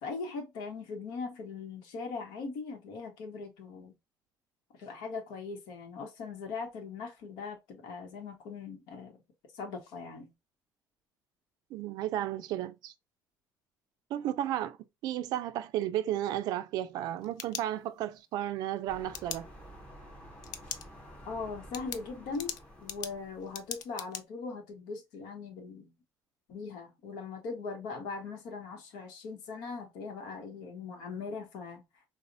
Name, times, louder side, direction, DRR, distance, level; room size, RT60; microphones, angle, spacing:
voice 1, 0.0-3.9 4.8-9.2 9.5-10.3 21.2-25.9 26.5-31.8, left 4 dB, 90° left, 0.9 m, -40 dB
voice 2, 11.7-12.9 14.1-14.8 15.0-19.5, right 12 dB, 70° right, 0.4 m, -33 dB
sound 1, 17.0-18.2 19.1-19.4 20.4-20.8 21.2-21.3 21.7-24.2, left 9 dB, 65° left, 0.4 m, -40 dB
sound 2, 18.9-23.8, equal, 15° left, 0.8 m, -51 dB
4.0 x 2.1 x 2.5 m
cardioid pair, 145°, 7 cm